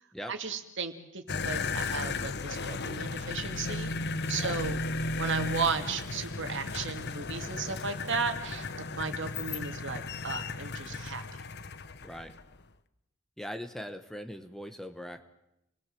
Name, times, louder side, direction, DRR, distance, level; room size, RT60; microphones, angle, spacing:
voice 1, 0.3-4.8 5.2-11.4, right 5 dB, 60° right, 7 dB, 2.4 m, -35 dB
sound 1, 1.3-12.6, left 3 dB, 50° left, 1.1 m, -35 dB
voice 2, 12.0-12.3 13.4-15.3, equal, ahead, 8 dB, 1.2 m, -41 dB
29.0 x 20.5 x 7.7 m, 0.84 s
head